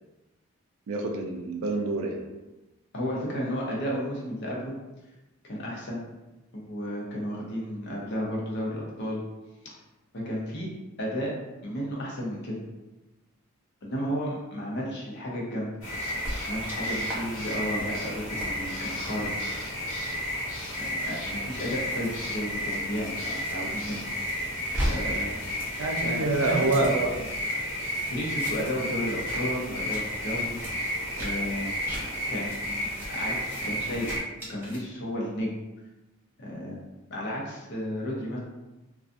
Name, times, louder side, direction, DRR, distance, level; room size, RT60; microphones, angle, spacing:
voice 1, 0.9-2.2 25.8-27.3, right 2 dB, 75° right, 2 dB, 0.3 m, -27 dB
voice 2, 2.9-4.7 5.4-6.0 6.5-9.2 9.6-9.7 10.1-10.7 11.0-11.3 11.6-12.6 13.8-15.7 16.4-19.3 20.8-24.0 24.8-25.4 26.0-26.9 28.1-30.9 31.2-31.7 32.3-34.2 34.5-35.5 36.4-36.8 37.1-38.4, equal, 55° left, -3 dB, 0.6 m, -33 dB
sound 1, 15.8-34.2, equal, 75° left, 1.1 m, -32 dB
sound 2, 16.2-16.8 17.1-17.2 17.6-17.9 18.4-18.5 19.1-19.3 20.0-23.5 23.9-24.9 25.2-27.5 27.9-28.8 29.1-29.4 29.7-30.0 30.5-30.7 31.1-31.3 31.8-32.0 32.5-32.6 33.0-33.1 33.4-33.7 34.0-34.8, equal, 10° right, 0.5 m, -38 dB
2.5 x 2.3 x 2.5 m, 1.0 s
head